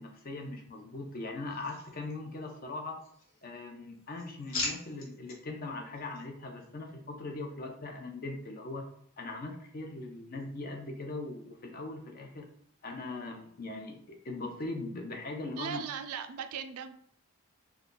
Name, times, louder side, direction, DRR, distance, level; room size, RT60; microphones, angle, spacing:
voice 1, 0.0-3.0 3.4-8.8 9.2-12.5 12.8-15.8, left 2 dB, 40° left, 2 dB, 0.5 m, -40 dB
sound 1, 1.5-2.6 2.9-3.6 4.0-5.4 5.9-6.2, left 2 dB, 70° left, 0.8 m, -40 dB
voice 2, 15.6-16.9, right 7 dB, 85° right, 8 dB, 0.3 m, -38 dB
2.3 x 2.2 x 3.7 m, 0.65 s
head